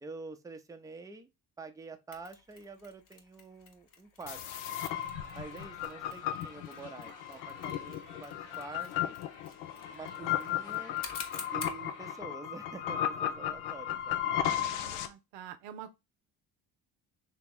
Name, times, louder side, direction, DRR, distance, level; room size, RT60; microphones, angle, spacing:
voice 1, 0.0-1.3 1.6-4.4 5.3-9.2 9.9-11.0 11.5-14.3, right 4 dB, 10° right, 0.6 m, -47 dB
Mechanisms, 2.1-11.9, left 5 dB, 45° left, 1.0 m, -50 dB
sound 1, 4.3-15.1, left 11 dB, 90° left, 0.6 m, -35 dB
sound 2, 4.6-12.2, left 4 dB, 65° left, 1.3 m, -53 dB
voice 2, 5.3-5.7 14.4-16.0, right 9 dB, 85° right, 0.6 m, -48 dB
2.9 x 2.9 x 3.6 m
supercardioid pair, 65°, 46 cm